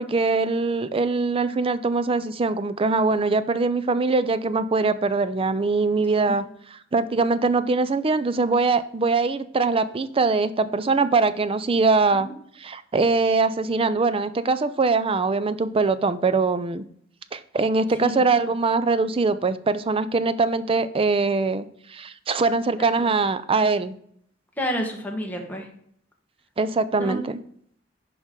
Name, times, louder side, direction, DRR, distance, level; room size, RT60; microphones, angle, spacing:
voice 1, 0.0-6.4 6.9-12.3 12.6-16.8 17.3-21.6 21.9-24.0 26.6-27.4, right 3 dB, 30° right, 14 dB, 0.4 m, -22 dB
voice 2, 22.8-23.2 24.6-25.7 27.0-27.2, equal, 10° left, 1 dB, 1.4 m, -30 dB
10.5 x 5.0 x 3.7 m, 0.65 s
head